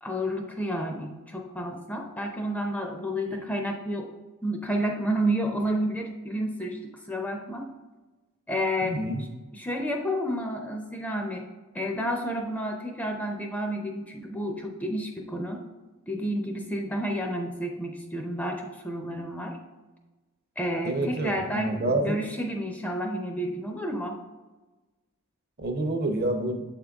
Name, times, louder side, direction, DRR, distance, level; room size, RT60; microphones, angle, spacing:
voice 1, 0.0-4.1 4.4-6.8 7.1-7.7 8.5-9.3 9.5-11.4 11.7-15.6 16.1-19.6 20.6-24.2, equal, 5° left, 2 dB, 0.5 m, -30 dB
voice 2, 8.8-9.2 20.8-22.2 25.6-26.6, right 1 dB, 45° right, 6 dB, 0.6 m, -28 dB
7.4 x 3.7 x 3.5 m, 1.2 s
head